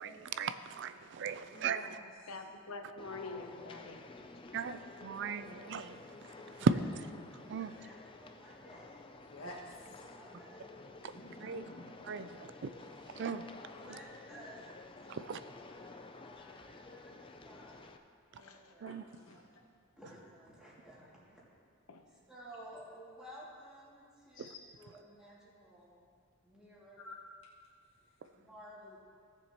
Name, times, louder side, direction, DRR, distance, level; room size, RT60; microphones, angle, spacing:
voice 1, 0.0-1.9 4.5-6.0 6.6-6.7 7.5-7.7 11.4-11.6 12.1-12.5 13.2-13.4 15.1-15.4 18.8-19.0, right 5 dB, 55° right, 12 dB, 0.4 m, -36 dB
voice 2, 1.4-2.1 4.5-4.6 9.3-10.1 11.1-11.9 13.0-13.3 18.9-19.4 24.3-24.6 27.0-27.2, left 1 dB, 65° left, -5 dB, 1.8 m, -50 dB
voice 3, 2.3-4.1 18.4-18.7 21.9-22.0, left 3 dB, 90° left, 5 dB, 0.9 m, -46 dB
sound 1, 3.0-18.0, left 3 dB, 25° left, 0.4 m, -52 dB
voice 4, 6.4-6.8 7.6-9.1 10.0-10.6 11.4-11.5 13.6-15.3 15.7-15.9 16.2-17.8 18.3-18.9 20.0-21.4 22.1-26.0 26.4-27.0 28.3-29.0, equal, 5° right, -8 dB, 2.4 m, -55 dB
17.5 x 6.9 x 3.0 m, 2.2 s
head